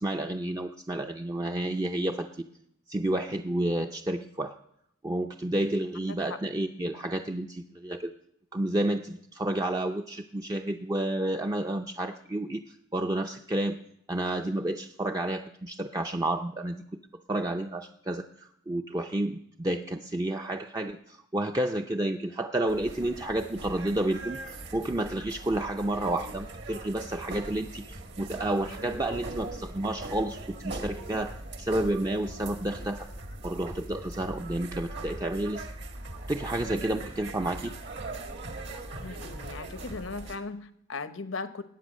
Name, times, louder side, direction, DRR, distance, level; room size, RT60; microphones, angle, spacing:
voice 1, 0.0-2.3 2.9-4.5 5.0-8.1 8.5-13.8 14.1-16.8 17.3-33.1 33.4-35.7 36.3-37.7, right 1 dB, 20° right, 4 dB, 0.5 m, -30 dB
sound 1, 22.7-40.4, right 2 dB, 60° right, 1.7 m, -40 dB
voice 2, 39.0-41.6, left 3 dB, 80° left, 11 dB, 1.0 m, -38 dB
20.0 x 8.9 x 6.4 m, 0.76 s
head